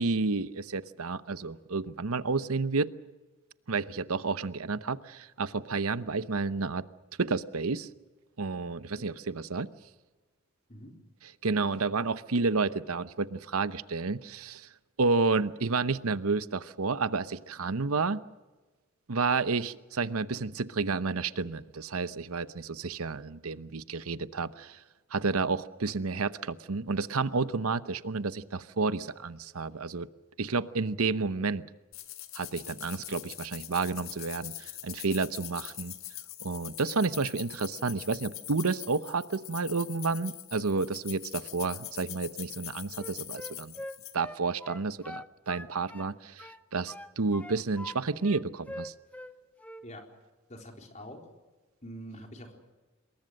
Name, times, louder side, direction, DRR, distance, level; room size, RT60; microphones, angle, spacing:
voice 1, 0.0-2.9 3.7-6.8 7.2-7.9 8.4-9.7 11.2-14.7 15.0-18.2 19.1-24.8 25.1-30.1 30.4-31.7 32.3-35.9 36.4-43.7 44.1-48.9, right 4 dB, 85° right, 14 dB, 0.9 m, -30 dB
sound 1, 31.9-44.2, left 14 dB, 70° left, 1.8 m, -43 dB
Wind instrument woodwind instrument, 42.9-46.1 46.4-48.0 48.2-49.3 49.6-49.9, left 1 dB, 5° left, 0.9 m, -43 dB
voice 2, 50.5-51.2 51.8-52.6, equal, 35° left, 3 dB, 4.1 m, -45 dB
27.0 x 22.0 x 6.5 m, 1.2 s
head